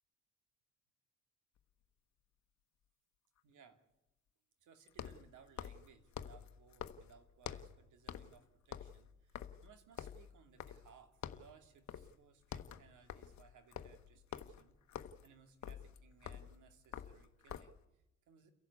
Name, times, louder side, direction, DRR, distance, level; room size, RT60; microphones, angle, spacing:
sound 1, 1.6-1.7 4.9-7.8 8.1-8.4 8.6-11.0 11.2-11.5 11.9-12.2 12.4-17.8, left 9 dB, 65° left, 1.2 m, -48 dB
voice 1, 3.4-3.8 4.6-18.5, right 6 dB, 75° right, 7 dB, 2.6 m, -64 dB
30.0 x 11.5 x 8.3 m, 0.93 s
cardioid pair, 90°, 30 cm